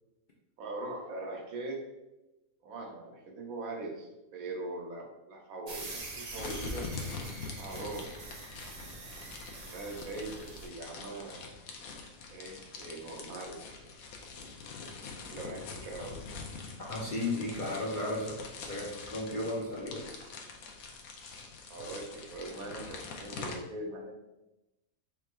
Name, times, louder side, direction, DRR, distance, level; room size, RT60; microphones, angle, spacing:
voice 1, 0.6-1.8 2.6-6.9 7.6-8.0 9.6-11.5 12.3-13.6 15.0-16.2 21.7-24.3, right 2 dB, 80° right, 0 dB, 1.2 m, -41 dB
sound 1, 5.7-10.7, right 2 dB, 40° right, 0.6 m, -45 dB
sound 2, 6.4-23.5, left 4 dB, 75° left, 1.1 m, -44 dB
voice 2, 16.8-20.0, left 2 dB, 50° left, -4 dB, 0.6 m, -35 dB
4.5 x 3.4 x 2.3 m, 0.99 s
omnidirectional pair, 1.5 m